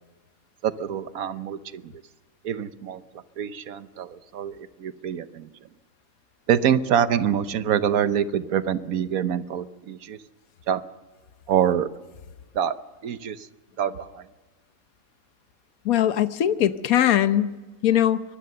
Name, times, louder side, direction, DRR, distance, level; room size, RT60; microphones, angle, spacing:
voice 1, 0.6-1.9 2.4-5.5 6.5-10.2 10.7-10.8 11.5-11.9 12.5-12.7 13.0-13.5 13.8-14.3, right 9 dB, 85° right, 13 dB, 1.4 m, -25 dB
voice 2, 15.8-18.2, left 11 dB, 80° left, 12 dB, 1.3 m, -21 dB
24.0 x 20.0 x 6.8 m, 1.3 s
omnidirectional pair, 1.5 m